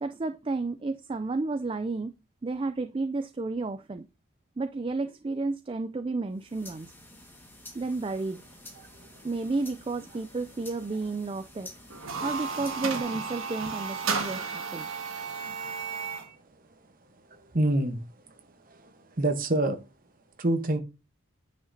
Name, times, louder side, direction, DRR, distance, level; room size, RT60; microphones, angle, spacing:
voice 1, 0.0-2.1 2.4-4.1 4.6-6.9 7.7-8.4 9.2-11.7 12.2-14.9, right 3 dB, 25° right, 0.3 m, -32 dB
sound 1, 6.3-13.0, left 1 dB, 10° left, 1.6 m, -50 dB
sound 2, 11.9-16.3, right 5 dB, 60° right, 1.6 m, -33 dB
voice 2, 17.5-18.0 19.2-19.8 20.4-20.8, right 1 dB, 40° right, 1.0 m, -25 dB
9.4 x 7.3 x 2.7 m
head